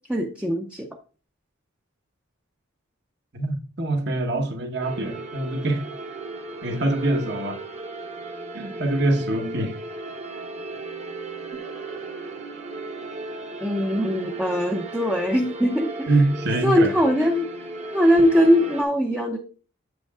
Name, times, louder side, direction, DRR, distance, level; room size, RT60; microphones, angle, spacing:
voice 1, 0.1-0.9 13.6-16.1 16.6-17.5 17.9-19.4, equal, 5° right, 0.6 m, -21 dB
voice 2, 3.3-5.9 6.6-7.6 8.5-9.8 16.1-16.9, right 2 dB, 55° right, 1.2 m, -24 dB
sound 1, 4.8-18.8, right 2 dB, 35° right, 0.9 m, -36 dB
7.8 x 7.5 x 2.4 m
head